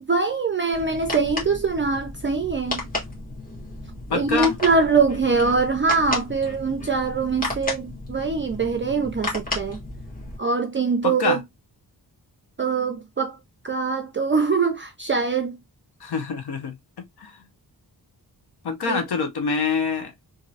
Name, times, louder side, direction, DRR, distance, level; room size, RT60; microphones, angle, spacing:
voice 1, 0.1-2.9 4.1-9.8 10.4-11.4 12.6-13.4 13.6-15.6 18.9-19.0, right 4 dB, 30° right, 0.4 m, -23 dB
sound 1, 0.7-10.4, left 2 dB, 20° left, 1.4 m, -33 dB
voice 2, 4.1-4.5 11.0-11.4 16.0-16.7 17.2-17.3 18.6-20.1, left 5 dB, 80° left, 0.8 m, -25 dB
3.0 x 2.6 x 2.7 m
wide cardioid pair, 155°, 39 cm